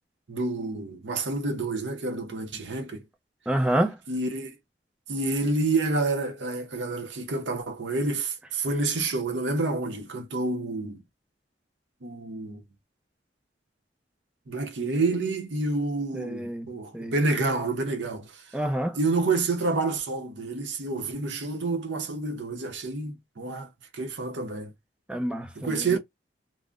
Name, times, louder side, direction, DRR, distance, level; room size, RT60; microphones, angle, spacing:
voice 1, 0.3-3.0 4.1-4.5 5.1-11.0 12.0-12.6 14.5-18.4 18.9-24.7 25.6-26.0, right 3 dB, 80° right, 0.7 m, -28 dB
voice 2, 3.5-4.0 16.1-17.1 18.5-19.0 25.1-26.0, right 1 dB, 5° right, 0.5 m, -28 dB
3.6 x 2.0 x 2.4 m
head